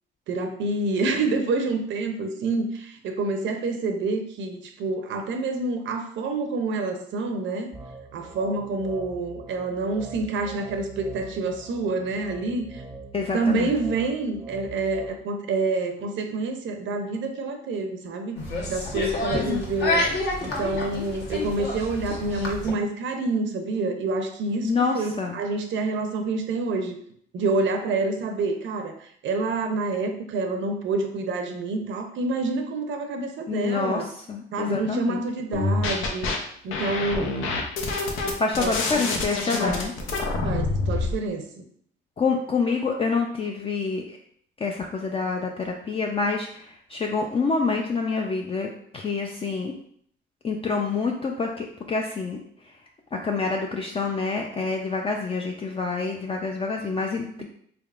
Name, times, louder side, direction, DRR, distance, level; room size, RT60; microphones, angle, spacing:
voice 1, 0.3-7.7 8.1-12.8 13.3-18.4 18.7-20.0 20.4-27.0 27.3-34.1 34.5-37.4 38.6-38.7 39.6-39.8 40.4-41.5, right 3 dB, 75° right, 5 dB, 0.6 m, -27 dB
sound 1, 7.7-15.1, right 3 dB, 10° right, 0.6 m, -42 dB
voice 2, 13.1-13.7 19.3-19.6 24.6-25.4 33.5-35.2 38.1-39.9 42.2-44.2 44.6-49.7 50.4-52.4 53.1-57.4, left 4 dB, 30° left, 1 dB, 0.4 m, -27 dB
sound 2, 18.4-22.7, left 2 dB, 60° left, 1.1 m, -29 dB
sound 3, 35.5-36.4 36.7-41.1, left 3 dB, 90° left, 0.7 m, -26 dB
3.6 x 3.4 x 2.4 m, 0.64 s
cardioid pair, 90°, 20 cm